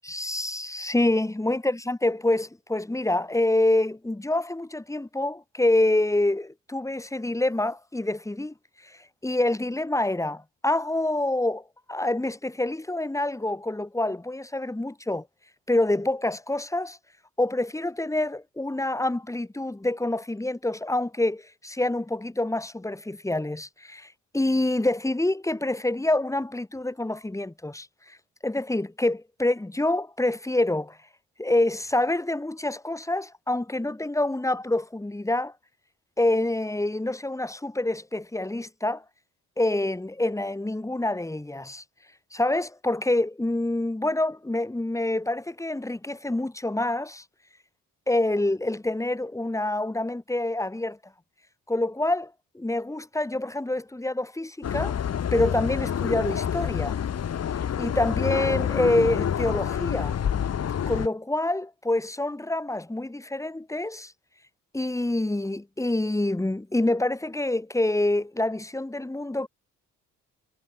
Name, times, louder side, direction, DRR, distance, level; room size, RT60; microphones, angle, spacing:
voice 1, 0.0-8.5 8.8-15.2 15.7-17.0 17.4-28.2 28.4-31.0 31.4-35.5 36.2-39.0 39.6-41.8 42.3-47.2 48.1-51.0 51.7-55.0 55.3-57.0 57.8-60.2 60.9-64.1 64.7-69.5, left 2 dB, 10° left, 5.4 m, -26 dB
sound 1, 54.6-61.1, left 9 dB, 55° left, 3.7 m, -27 dB
cardioid pair, 110°, 30 cm